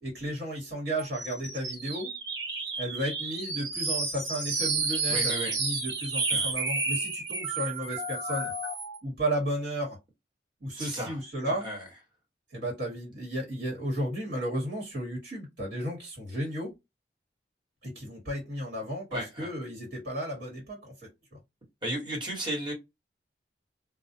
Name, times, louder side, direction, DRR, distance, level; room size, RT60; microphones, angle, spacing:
voice 1, 0.0-2.1 2.8-8.5 9.0-10.0 10.6-11.6 12.5-16.7 17.8-21.4, equal, 60° right, 1.4 m, -34 dB
sound 1, 1.0-9.0, right 3 dB, 85° right, 1.0 m, -31 dB
voice 2, 5.1-5.6 6.3-6.5 10.7-11.9 19.1-19.5 21.8-22.7, right 1 dB, 25° right, 1.3 m, -35 dB
2.3 x 2.1 x 2.7 m
head